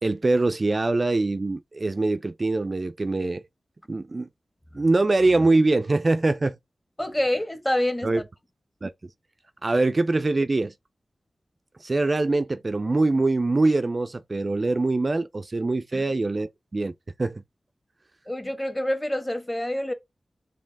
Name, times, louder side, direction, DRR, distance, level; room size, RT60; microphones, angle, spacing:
voice 1, 0.0-3.4 3.9-4.3 4.7-6.5 8.0-8.2 8.8-8.9 9.6-10.7 11.8-16.9 17.2-17.4, right 2 dB, 45° right, 0.3 m, -23 dB
voice 2, 7.0-8.1 15.9-16.0 18.3-19.9, left 1 dB, 15° left, 1.2 m, -27 dB
4.4 x 3.2 x 3.4 m
cardioid pair, 45°, 0 cm